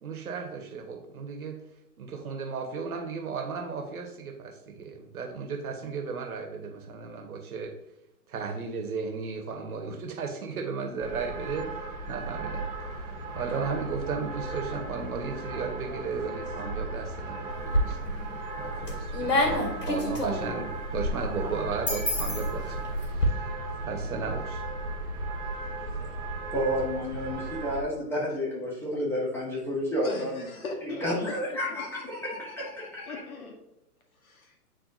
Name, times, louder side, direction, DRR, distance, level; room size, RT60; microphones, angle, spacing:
voice 1, 0.0-1.6 2.0-7.7 8.3-13.0 13.3-22.9 23.3-23.5 23.8-24.6, right 5 dB, 65° right, 4 dB, 1.4 m, -35 dB
sound 1, 11.0-27.8, right 2 dB, 15° right, 0.8 m, -36 dB
sound 2, 17.5-18.2 18.6-23.3, equal, 90° left, 2.4 m, -28 dB
voice 2, 26.5-30.5 30.8-33.2, equal, 5° left, -5 dB, 1.6 m, -31 dB
voice 3, 30.0-31.9 33.1-33.6 34.2-34.6, left 3 dB, 60° left, 2 dB, 1.8 m, -39 dB
9.0 x 4.2 x 2.7 m, 0.91 s
hypercardioid pair, 135°, 47 cm